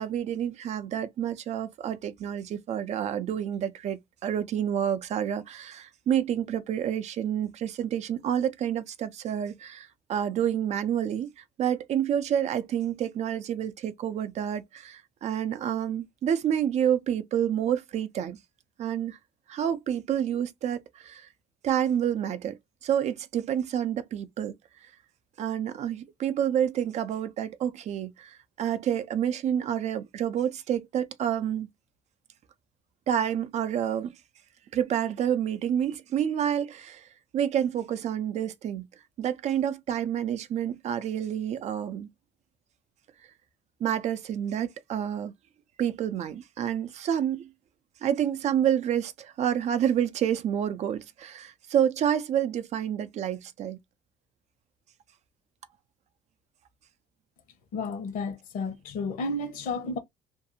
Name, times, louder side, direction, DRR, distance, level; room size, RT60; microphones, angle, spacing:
voice 1, 0.0-18.4 18.8-19.2 19.5-21.3 21.6-22.6 22.8-24.5 25.4-31.7 33.1-34.1 34.7-37.1 37.3-38.9 39.2-42.1 43.8-45.3 45.8-47.5 48.0-53.8, right 9 dB, 50° right, 0.5 m, -28 dB
voice 2, 57.7-60.0, left 3 dB, 70° left, 1.0 m, -32 dB
2.6 x 2.3 x 2.6 m
cardioid pair, 110°, 15 cm